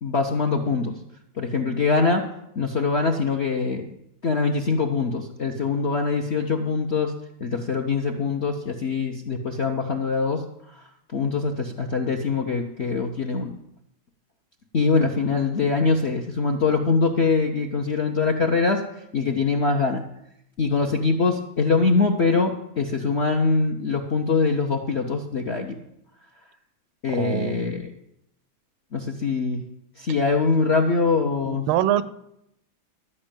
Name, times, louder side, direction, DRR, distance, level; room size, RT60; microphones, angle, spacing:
voice 1, 0.0-1.0 1.4-2.3 2.6-3.8 4.2-7.1 7.4-10.4 10.7-10.8 11.1-13.5 14.7-18.8 19.1-20.0 20.6-25.8 27.0-27.9 28.9-29.6 30.0-31.7, left 4 dB, 60° left, 4 dB, 0.7 m, -23 dB
voice 2, 27.2-27.8 31.4-32.0, right 12 dB, 90° right, 15 dB, 1.5 m, -24 dB
13.0 x 5.4 x 8.9 m, 0.80 s
omnidirectional pair, 2.2 m